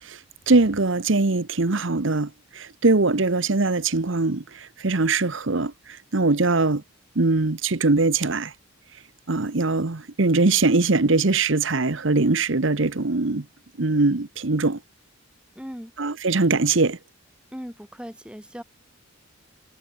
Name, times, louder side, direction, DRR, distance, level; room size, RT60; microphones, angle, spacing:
voice 1, 0.0-6.8 7.2-8.5 9.3-13.4 13.8-14.8 16.0-17.0, right 3 dB, 60° right, 1.0 m, -22 dB
voice 2, 15.6-15.9 17.5-18.6, equal, 5° right, 3.9 m, -38 dB
head